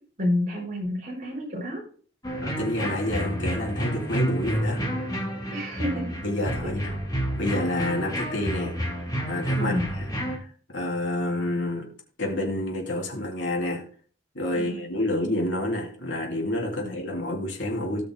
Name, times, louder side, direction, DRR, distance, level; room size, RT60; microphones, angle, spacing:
voice 1, 0.2-1.8 5.5-6.0 6.6-7.0 9.5-9.9 14.5-14.8 16.8-16.9, left 1 dB, 40° right, -3 dB, 5.0 m, -29 dB
sound 1, 2.2-10.4, equal, 20° left, 2.0 m, -30 dB
voice 2, 2.4-4.8 6.2-6.9 7.4-8.8 9.3-10.1 10.7-11.9 12.2-13.8 14.3-18.0, left 1 dB, 75° left, 1 dB, 2.9 m, -28 dB
18.0 x 6.2 x 2.2 m, 0.43 s
head